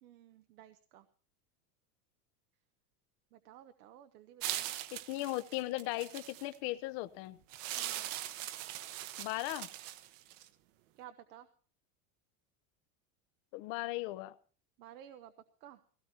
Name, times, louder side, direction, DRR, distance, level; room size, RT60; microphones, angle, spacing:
voice 1, 0.0-1.1 3.3-4.7 7.7-8.1 11.0-11.5 14.8-15.3 15.6-15.8, right 11 dB, 90° right, 9 dB, 1.1 m, -54 dB
sound 1, 4.4-6.6 7.5-10.5, right 14 dB, 60° right, 1.0 m, -41 dB
voice 2, 4.9-7.4 9.2-9.7 13.5-14.3, left 18 dB, 45° left, 13 dB, 0.7 m, -37 dB
18.5 x 17.0 x 2.8 m, 0.42 s
supercardioid pair, 160°, 45 cm